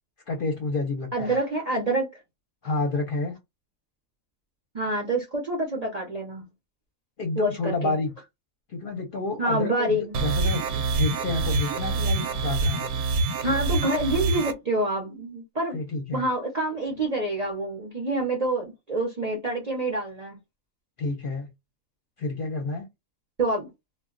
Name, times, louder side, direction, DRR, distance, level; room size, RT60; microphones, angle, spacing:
voice 1, 0.3-1.3 2.6-3.4 7.2-8.1 8.7-12.9 15.7-16.2 21.0-21.5 22.2-22.9, left 3 dB, 50° left, 0.7 m, -29 dB
voice 2, 1.1-2.1 4.7-6.4 7.4-7.9 9.4-10.2 13.4-15.8 16.1-20.4 23.4-23.7, right 1 dB, 45° right, 0.5 m, -27 dB
sound 1, 10.1-14.5, right 3 dB, 75° right, 0.9 m, -26 dB
2.3 x 2.1 x 3.7 m
omnidirectional pair, 1.4 m